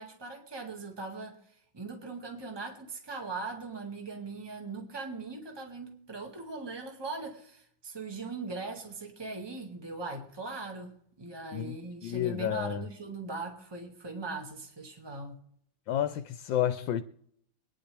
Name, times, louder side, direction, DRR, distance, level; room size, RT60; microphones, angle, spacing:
voice 1, 0.0-1.4 1.7-15.4, right 3 dB, 15° right, 1.9 m, -40 dB
voice 2, 11.5-12.8 15.9-17.0, left 11 dB, 75° left, 1.4 m, -30 dB
25.5 x 10.0 x 3.4 m
omnidirectional pair, 2.1 m